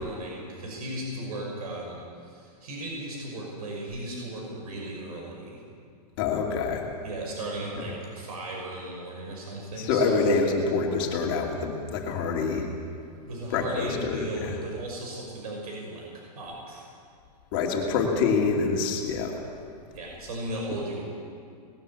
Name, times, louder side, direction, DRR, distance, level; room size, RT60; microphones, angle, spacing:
voice 1, 0.0-5.6 7.0-10.3 13.2-16.9 19.9-21.0, right 1 dB, 60° right, -1 dB, 5.9 m, -36 dB
voice 2, 6.2-6.9 9.9-12.7 13.5-14.6 17.5-19.3, left 4 dB, 35° left, 0 dB, 2.6 m, -26 dB
20.0 x 13.5 x 9.7 m, 2.3 s
supercardioid pair, 175°, 21 cm